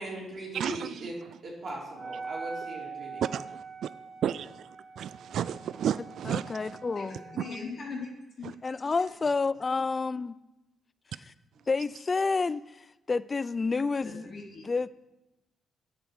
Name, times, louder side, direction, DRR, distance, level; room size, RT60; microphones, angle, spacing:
voice 1, 0.0-1.1 1.4-3.3, right 1 dB, 50° right, 3.1 m, -39 dB
voice 2, 0.5-1.4 3.2-3.9 4.2-4.7 5.0-6.8 7.4-7.5 8.4-8.5, right 9 dB, 70° right, 0.3 m, -33 dB
Wind instrument woodwind instrument, 1.9-7.7, right 4 dB, 35° right, 1.3 m, -43 dB
voice 3, 6.2-7.2 8.6-10.4 11.7-14.2 14.7-14.9, left 4 dB, 30° left, 0.4 m, -29 dB
voice 4, 6.9-8.1 8.4-8.5 9.0-9.1 9.5-9.6 14.0-14.9, left 4 dB, 50° left, 2.8 m, -40 dB
9.3 x 8.2 x 6.2 m
cardioid pair, 105°, 0 cm